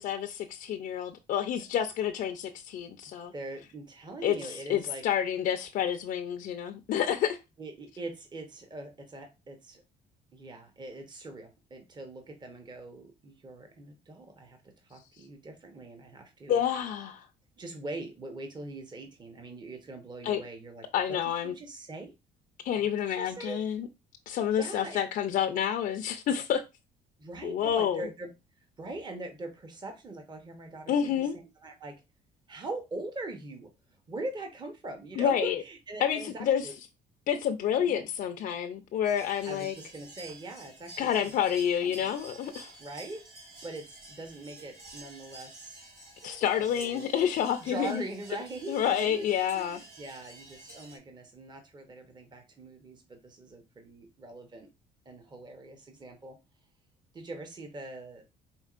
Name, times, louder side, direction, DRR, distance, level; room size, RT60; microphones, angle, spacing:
voice 1, 0.0-3.3 4.2-7.4 16.5-17.3 20.2-20.4 20.9-21.5 22.6-23.9 24.3-26.6 27.4-28.0 30.9-31.3 35.2-35.6 36.0-36.7 37.3-39.7 41.0-42.7 46.2-48.0 48.7-49.8, left 9 dB, 55° left, 0.4 m, -29 dB
voice 2, 3.3-5.0 7.6-9.8 10.3-14.6 14.9-16.6 17.6-20.9 21.2-22.1 22.8-23.6 24.5-25.0 27.2-28.3 28.8-31.2 31.6-32.0 32.5-36.7 37.8-38.0 39.5-41.3 41.8-42.1 42.8-43.2 43.6-45.8 46.6-47.1 47.6-54.7 55.1-56.4 57.1-58.2, right 2 dB, 25° right, 0.8 m, -42 dB
sound 1, 39.0-51.0, right 2 dB, 90° right, 2.6 m, -50 dB
4.4 x 3.6 x 2.4 m
cardioid pair, 110°, 17 cm